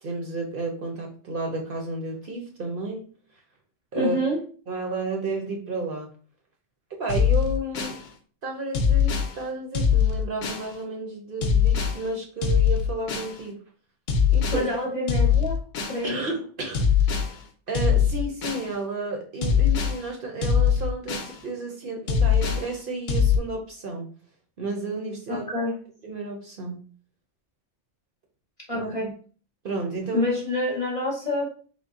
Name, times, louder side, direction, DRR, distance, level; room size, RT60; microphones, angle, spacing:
voice 1, 0.0-3.1 3.9-4.2 4.7-6.1 6.9-8.0 8.4-13.6 14.3-14.7 16.0-16.9 17.7-24.1 24.6-25.5 26.0-26.8 28.7-29.1 29.6-30.3, right 2 dB, 55° right, 1 dB, 0.8 m, -32 dB
voice 2, 3.9-4.4 14.5-15.6 15.9-16.3 25.3-25.7 28.7-29.1 30.1-31.5, left 1 dB, 35° left, -2 dB, 0.7 m, -27 dB
sound 1, 7.1-8.0 8.7-9.3 9.7-10.7 11.4-12.0 12.4-13.3 14.1-14.7 15.1-16.0 16.7-17.3 17.7-18.7 19.4-20.0 20.4-21.3 22.1-22.7 23.1-23.4, left 7 dB, 65° left, 0.8 m, -22 dB
3.6 x 2.1 x 3.6 m, 0.41 s
omnidirectional pair, 1.2 m